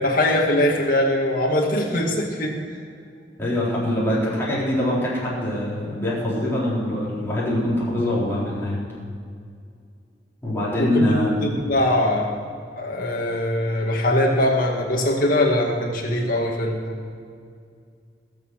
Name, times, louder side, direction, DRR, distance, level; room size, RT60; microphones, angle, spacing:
voice 1, 0.0-2.6 10.8-11.1 11.4-12.4 12.8-17.0, left 1 dB, 50° left, -2 dB, 2.1 m, -22 dB
voice 2, 3.4-8.8 10.4-11.3 11.6-11.7, left 1 dB, 15° left, -8 dB, 4.0 m, -23 dB
21.0 x 7.0 x 6.6 m, 2.3 s
head